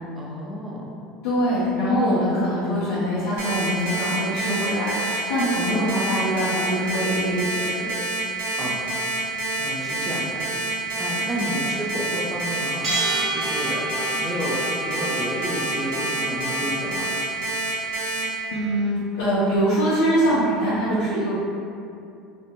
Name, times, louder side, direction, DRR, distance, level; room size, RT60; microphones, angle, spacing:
voice 1, 0.2-0.9 8.6-8.9 9.6-10.4 11.0-13.9 14.2-17.2, equal, 25° right, -3 dB, 0.6 m, -31 dB
voice 2, 1.2-7.9 18.5-21.4, equal, 70° left, -11 dB, 0.6 m, -23 dB
Alarm, 3.4-18.2, right 2 dB, 75° right, 0.6 m, -27 dB
Bowed string instrument, 12.6-17.2, left 1 dB, 25° left, 0.5 m, -34 dB
Bell, 12.8-14.4, right 3 dB, 45° right, 1.0 m, -28 dB
2.4 x 2.2 x 3.0 m, 2.5 s
hypercardioid pair, 75°, 0 cm